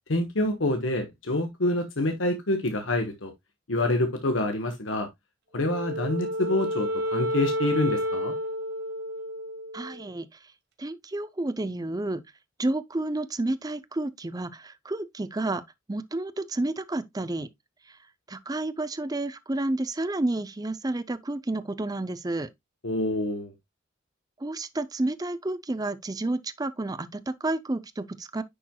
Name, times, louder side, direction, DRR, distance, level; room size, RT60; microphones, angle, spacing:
voice 1, 0.1-3.3 3.7-5.1 5.5-8.3 22.8-23.5, left 1 dB, 85° left, 1.3 m, -27 dB
Wind instrument woodwind instrument, 5.6-10.0, equal, 60° right, 1.9 m, -30 dB
voice 2, 9.7-10.4 10.8-12.2 12.6-15.6 15.9-17.5 17.9-18.0 18.3-22.5 24.4-28.4, right 2 dB, 20° right, 0.5 m, -30 dB
10.0 x 4.5 x 2.2 m
head